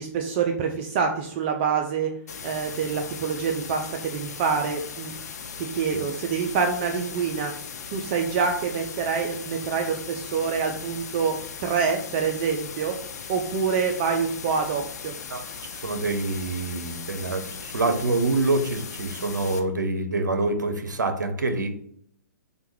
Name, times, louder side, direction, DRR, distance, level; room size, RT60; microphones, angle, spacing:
voice 1, 0.0-2.1 2.4-5.1 5.6-7.5 7.9-11.4 11.6-12.9 13.3-15.1, right 6 dB, 35° right, 3 dB, 0.4 m, -26 dB
sound 1, 2.3-19.6, left 6 dB, 60° left, 0.5 m, -38 dB
voice 2, 15.3-21.7, right 2 dB, 85° right, 6 dB, 0.6 m, -26 dB
3.3 x 2.2 x 3.1 m, 0.65 s
hypercardioid pair, 130°, 10 cm